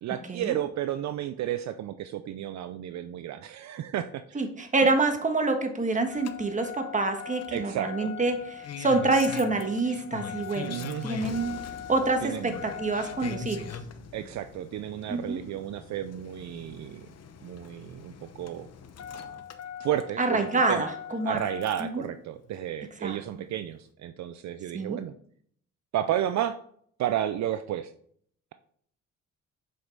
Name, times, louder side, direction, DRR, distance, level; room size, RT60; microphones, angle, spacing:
voice 1, 0.0-4.5 7.5-8.1 10.7-11.1 12.2-12.5 14.1-17.1 17.4-18.7 19.1-19.4 19.8-20.9 21.2-25.2 25.9-26.6 27.0-27.9, right 11 dB, 65° right, 11 dB, 0.5 m, -32 dB
voice 2, 4.3-10.8 11.0-11.6 11.9-13.6 15.1-15.4 20.2-21.4 21.8-22.0 23.0-23.2 24.7-25.0, right 3 dB, 25° right, 6 dB, 1.4 m, -27 dB
Engine starting, 6.1-22.0 23.3-23.4, left 7 dB, 55° left, 0.9 m, -41 dB
7.7 x 5.4 x 4.0 m, 0.63 s
cardioid pair, 90°, 30 cm